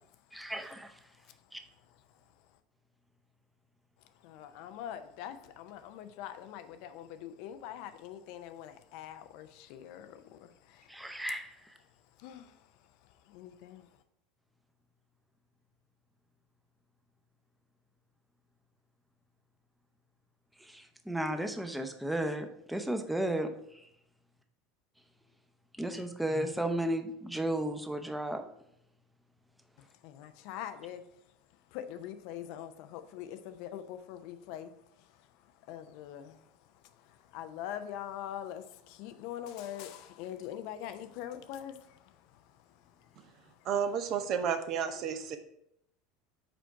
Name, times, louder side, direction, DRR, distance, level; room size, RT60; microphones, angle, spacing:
voice 1, 0.3-0.9 1.5-1.6 10.9-11.5 20.7-23.5 25.8-28.5, right 1 dB, 5° right, 6 dB, 0.8 m, -34 dB
voice 2, 4.2-11.3 12.2-12.7 13.0-13.9 30.0-31.0 31.7-43.7, left 10 dB, 60° left, 9 dB, 0.5 m, -44 dB
voice 3, 43.6-45.4, right 7 dB, 50° right, 9 dB, 0.6 m, -31 dB
5.1 x 4.4 x 4.7 m, 0.75 s
hypercardioid pair, 80°, 0 cm